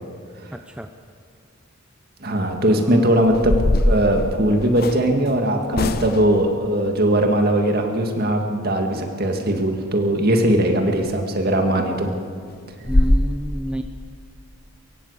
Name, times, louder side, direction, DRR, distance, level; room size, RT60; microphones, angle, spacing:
voice 1, 0.5-0.9 2.7-3.1 12.8-13.8, equal, 5° right, 6 dB, 0.6 m, -30 dB
voice 2, 2.2-3.6 3.8-12.1, right 1 dB, 45° right, 3 dB, 2.1 m, -20 dB
sound 1, 2.7-2.8 3.2-5.0 5.7-6.4 10.9-11.0 11.5-11.6 12.0-12.1 12.5-12.6 12.8-13.2, left 1 dB, 45° left, 0.9 m, -21 dB
23.0 x 15.5 x 8.3 m, 2.3 s
head